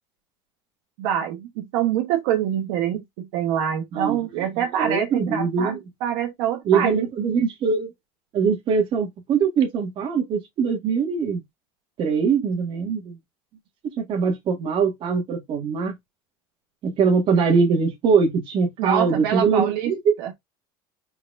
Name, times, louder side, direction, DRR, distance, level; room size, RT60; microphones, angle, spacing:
voice 1, 1.0-7.1 18.8-19.9 20.2-20.3, right 10 dB, 85° right, 1.2 m, -25 dB
voice 2, 3.9-4.2 4.6-5.8 6.7-7.9 8.3-11.4 12.0-13.2 13.8-15.9 16.8-20.3, right 5 dB, 45° right, 1.9 m, -22 dB
4.6 x 4.1 x 2.6 m
cardioid pair, 145°, 12 cm